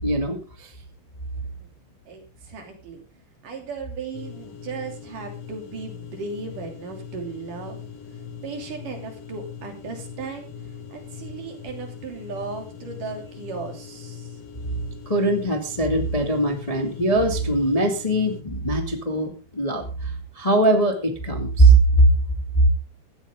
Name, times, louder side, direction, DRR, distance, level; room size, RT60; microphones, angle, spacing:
voice 1, 0.0-0.7 15.0-22.1, right 2 dB, 15° left, 3 dB, 1.5 m, -21 dB
voice 2, 2.1-3.0 3.4-7.8 8.4-10.5 10.9-14.3, right 4 dB, 65° right, 3 dB, 4.5 m, -36 dB
sound 1, 4.1-18.4, left 7 dB, 50° left, 2.2 m, -40 dB
16.5 x 13.5 x 3.7 m, 0.33 s
omnidirectional pair, 4.1 m